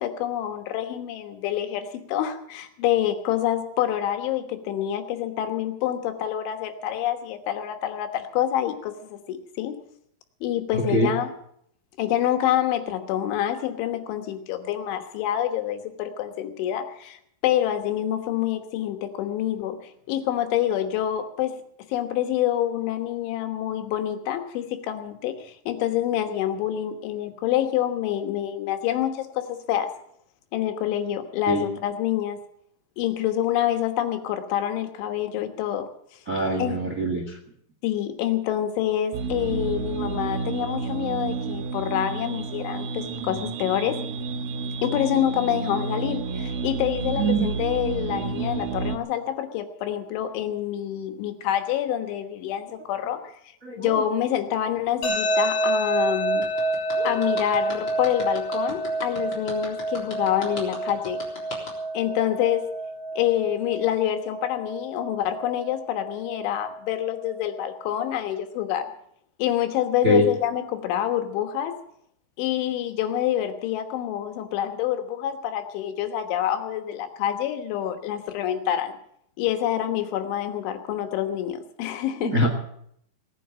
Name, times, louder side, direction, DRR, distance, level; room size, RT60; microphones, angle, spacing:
voice 1, 0.0-9.8 10.4-11.3 12.0-21.6 21.9-29.9 30.5-32.4 33.0-35.9 36.6-36.8 37.8-44.0 44.8-53.2 53.8-56.5 57.0-61.2 61.9-62.7 63.2-68.9 69.4-71.8 72.4-78.9 79.4-82.4, left 11 dB, 85° left, 6 dB, 3.8 m, -27 dB
voice 2, 10.7-11.1 31.5-31.7 36.3-37.4 47.2-47.5 53.6-54.0 57.0-57.1 70.0-70.2 82.2-82.5, equal, 55° right, 2 dB, 0.8 m, -23 dB
sound 1, 39.1-49.0, right 5 dB, 75° right, 2.2 m, -30 dB
sound 2, 55.0-68.0, right 1 dB, 50° left, 6.8 m, -29 dB
sound 3, 56.4-61.7, left 2 dB, 25° left, 3.7 m, -37 dB
18.5 x 10.0 x 7.5 m, 0.70 s
omnidirectional pair, 5.3 m